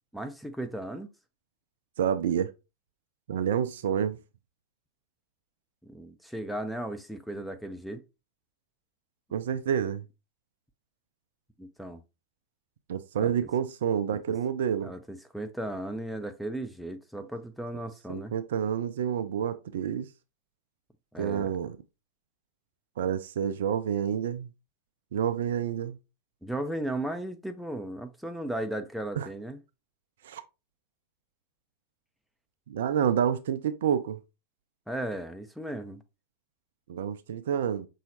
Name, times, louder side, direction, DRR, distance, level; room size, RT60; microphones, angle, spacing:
voice 1, 0.1-1.1 5.8-8.0 11.6-12.0 13.2-13.3 14.8-18.3 21.1-21.5 26.4-29.6 34.9-36.0, right 1 dB, ahead, 0.6 m, -36 dB
voice 2, 2.0-2.5 3.3-4.2 9.3-10.0 12.9-14.9 18.1-20.1 21.2-21.8 23.0-24.5 25.1-26.0 29.2-29.3 30.2-30.4 32.7-34.2 36.9-37.9, right 8 dB, 60° right, 0.4 m, -28 dB
5.5 x 3.1 x 2.7 m
figure-of-eight pair, 90°, 0 cm